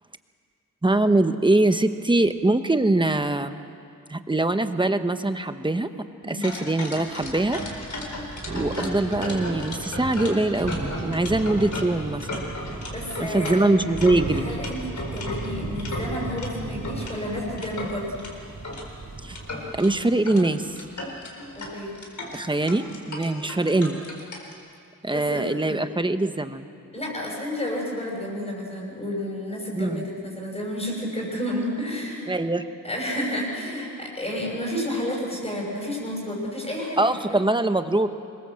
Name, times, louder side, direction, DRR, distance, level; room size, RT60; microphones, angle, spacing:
voice 1, 0.8-3.6 4.1-5.9 6.3-7.6 8.5-12.5 13.2-14.5 19.2-19.4 19.8-20.7 22.3-24.0 25.0-26.7 29.7-30.1 32.3-32.6 37.0-38.1, right 2 dB, 15° right, 9 dB, 1.0 m, -23 dB
sound 1, 6.4-16.5 16.8-18.9 19.3-19.9 20.3-20.4 20.7-24.5, left 2 dB, 55° left, 4.3 m, -35 dB
Thunder / Rain, 7.2-20.1, right 3 dB, 65° right, 4.7 m, -35 dB
voice 2, 12.9-13.6 14.3-18.2 21.5-22.0 25.1-25.8 26.9-32.3 32.8-37.4, equal, 20° left, -4 dB, 5.9 m, -31 dB
25.5 x 22.0 x 7.6 m, 2.5 s
wide cardioid pair, 145°, 34 cm